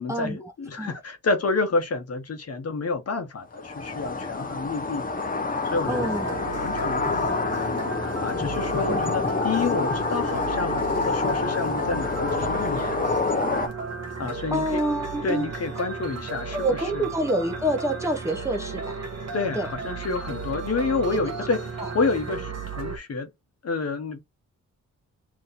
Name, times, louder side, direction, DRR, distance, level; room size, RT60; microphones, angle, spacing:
voice 1, 0.0-5.1 5.6-6.1 6.6-13.1 14.2-14.6 15.2-17.0 19.3-23.3 23.6-24.2, left 3 dB, 55° left, 1.0 m, -29 dB
sound 1, 3.5-13.7, left 3 dB, 30° left, 0.7 m, -27 dB
sound 2, 5.8-23.0, right 4 dB, 55° right, 1.0 m, -34 dB
voice 2, 5.9-6.3 8.9-9.0 14.5-15.5 16.5-19.1 19.6-19.7 21.8-21.9, right 1 dB, 10° right, 0.7 m, -27 dB
3.1 x 2.6 x 3.9 m
wide cardioid pair, 105°, 30 cm